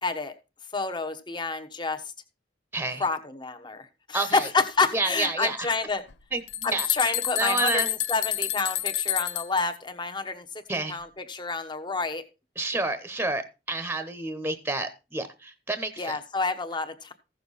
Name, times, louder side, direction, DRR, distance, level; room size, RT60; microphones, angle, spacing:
voice 1, 0.0-0.3 0.7-2.0 3.0-6.0 6.6-10.6 10.9-12.2 16.0-17.1, left 4 dB, 25° left, 8 dB, 1.1 m, -29 dB
voice 2, 2.7-3.0 4.1-4.5 4.9-5.7 6.3-7.9 10.7-11.0 12.6-16.2, right 2 dB, 10° right, 10 dB, 0.9 m, -30 dB
sound 1, 6.1-6.2 6.5-9.6, left 13 dB, 80° left, 0.7 m, -29 dB
15.0 x 6.8 x 4.1 m, 0.30 s
head